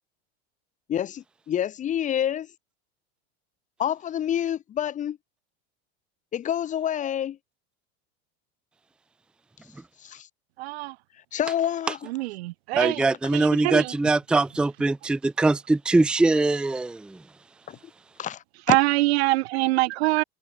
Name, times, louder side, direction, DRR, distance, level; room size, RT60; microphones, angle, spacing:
voice 1, 0.9-2.5 3.8-5.2 6.3-7.4 10.0-10.3 11.3-12.1 17.7-17.8 18.2-18.8, left 10 dB, 25° left, 0.9 m, -28 dB
voice 2, 10.6-10.9 12.1-13.0 13.3-13.9 18.7-20.2, right 20 dB, 85° right, 1.5 m, -24 dB
voice 3, 12.7-17.2, right 2 dB, 5° right, 0.5 m, -22 dB
supercardioid pair, 150°, 31 cm